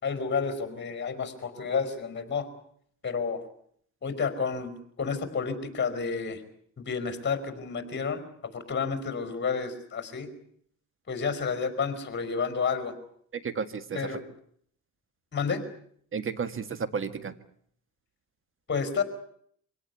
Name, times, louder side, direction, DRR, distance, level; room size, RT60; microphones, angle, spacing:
voice 1, 0.0-2.5 3.0-3.4 4.0-6.4 6.8-10.3 11.1-13.0 13.9-14.2 15.3-15.6 18.7-19.0, left 5 dB, 35° left, 10 dB, 4.9 m, -30 dB
voice 2, 13.3-14.2 16.1-17.4, right 6 dB, 45° right, 14 dB, 1.8 m, -33 dB
25.0 x 17.5 x 9.5 m, 0.65 s
cardioid pair, 90°, 30 cm